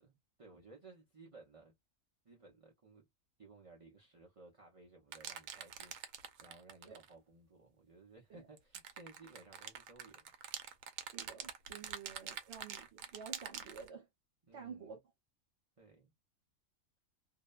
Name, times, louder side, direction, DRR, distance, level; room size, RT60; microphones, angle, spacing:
voice 1, 0.0-1.7 2.2-3.1 3.4-10.3 14.5-15.0 15.8-16.1, right 3 dB, 40° right, 0.5 m, -59 dB
sound 1, 5.1-7.1 8.6-13.9, right 8 dB, 80° right, 1.0 m, -46 dB
voice 2, 11.0-14.1 14.5-15.0, right 6 dB, 55° right, 1.1 m, -51 dB
2.7 x 2.1 x 2.3 m
omnidirectional pair, 1.4 m